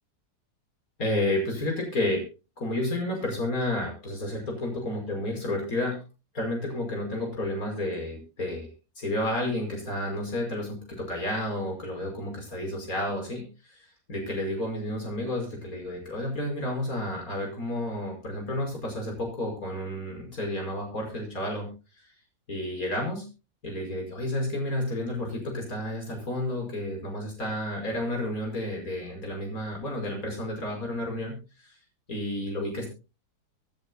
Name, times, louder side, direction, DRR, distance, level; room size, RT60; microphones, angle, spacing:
voice 1, 1.0-2.2 2.6-6.0 6.3-8.7 9.0-21.7 22.5-23.2 23.6-31.7 32.1-32.9, left 1 dB, 50° left, 1 dB, 5.9 m, -31 dB
26.0 x 10.5 x 2.3 m, 0.30 s
omnidirectional pair, 2.0 m